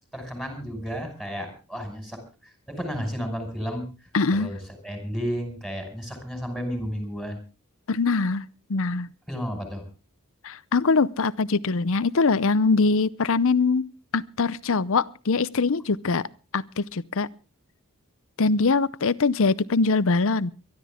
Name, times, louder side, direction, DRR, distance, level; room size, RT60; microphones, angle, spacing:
voice 1, 0.1-2.2 2.7-3.9 4.3-4.6 4.8-7.4 9.3-9.8, equal, ahead, 5.6 m, -32 dB
voice 2, 4.1-4.5 7.9-8.4 8.7-9.1 10.4-16.2 16.5-17.3 18.4-20.5, left 4 dB, 60° left, 0.7 m, -23 dB
23.5 x 12.5 x 3.7 m
head